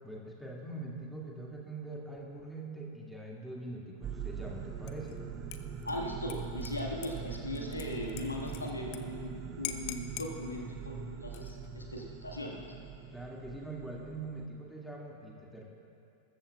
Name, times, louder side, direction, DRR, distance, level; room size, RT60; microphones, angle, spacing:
voice 1, 0.0-5.2 13.1-15.6, right 2 dB, ahead, -3 dB, 2.1 m, -43 dB
sound 1, 4.0-14.5, right 6 dB, 30° right, 0.8 m, -42 dB
Dishes pots and pans / Liquid, 4.9-5.2 5.5-9.0 9.3-9.4 9.6-10.3 11.2-11.7, left 13 dB, 45° left, 0.8 m, -44 dB
voice 2, 5.8-12.6, left 1 dB, 80° left, -1 dB, 1.6 m, -39 dB
21.5 x 14.0 x 2.3 m, 2.6 s
figure-of-eight pair, 90°, 0 cm